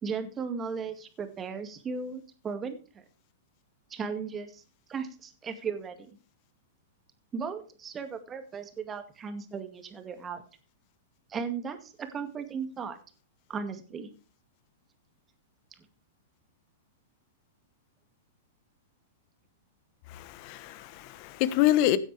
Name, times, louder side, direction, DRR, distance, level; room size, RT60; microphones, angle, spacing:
voice 1, 0.0-3.0 3.9-4.6 4.9-6.1 7.3-10.4 11.3-13.0 13.5-14.1, right 5 dB, 25° right, 2.1 m, -36 dB
voice 2, 20.1-22.0, left 14 dB, 50° left, 1.2 m, -26 dB
16.5 x 7.8 x 3.3 m
hypercardioid pair, 115°, 0 cm